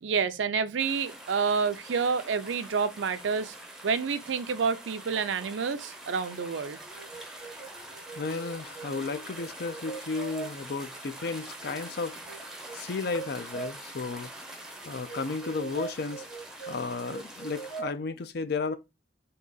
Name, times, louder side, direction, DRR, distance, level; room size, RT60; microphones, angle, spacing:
voice 1, 0.0-3.5 3.8-6.8, right 5 dB, 75° right, 0.4 m, -28 dB
sound 1, 0.8-17.8, right 1 dB, 5° right, 0.6 m, -45 dB
sound 2, 6.8-10.5 11.6-11.8 12.2-12.8 13.1-13.7 14.8-17.9, right 5 dB, 80° left, 2.2 m, -42 dB
voice 2, 8.2-12.2 12.7-14.3 14.9-16.3 16.7-18.8, left 4 dB, 55° left, 0.5 m, -33 dB
3.7 x 2.8 x 3.8 m
head